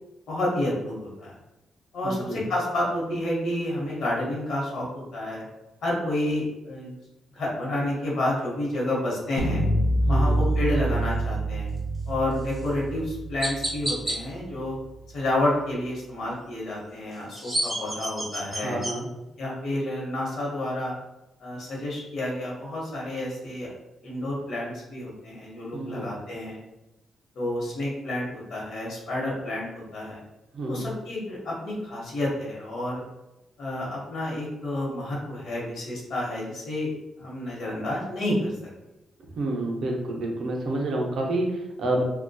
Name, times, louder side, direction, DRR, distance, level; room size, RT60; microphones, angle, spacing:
voice 1, 0.3-1.3 1.9-5.4 5.8-6.9 7.3-9.7 10.1-11.7 12.1-14.8 15.1-18.8 19.4-20.9 21.4-23.7 24.0-26.6 27.3-30.2 30.7-33.0 33.6-38.5, left 1 dB, 65° left, -4 dB, 0.8 m, -30 dB
voice 2, 2.0-2.4 10.1-10.4 18.5-19.1 25.7-26.1 30.5-30.9 39.4-42.0, right 1 dB, 60° right, 0 dB, 0.5 m, -29 dB
sound 1, 9.4-15.4, right 1 dB, 90° left, 0.6 m, -27 dB
Chirp tweet, 12.5-12.7 13.4-14.2 17.1-18.9, right 1 dB, 5° right, 0.7 m, -29 dB
2.6 x 2.1 x 2.2 m, 0.95 s
cardioid pair, 135°, 0 cm